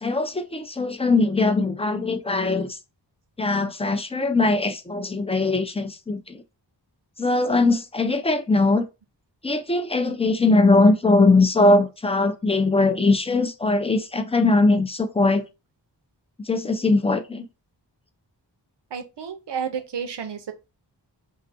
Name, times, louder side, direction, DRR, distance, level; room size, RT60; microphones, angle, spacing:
voice 1, 0.0-2.8 3.4-6.4 7.2-8.9 9.4-15.4 16.5-17.5, left 3 dB, 15° left, 0.3 m, -20 dB
voice 2, 18.9-20.5, right 7 dB, 70° right, 0.6 m, -31 dB
2.5 x 2.4 x 2.5 m
wide cardioid pair, 45°, 44 cm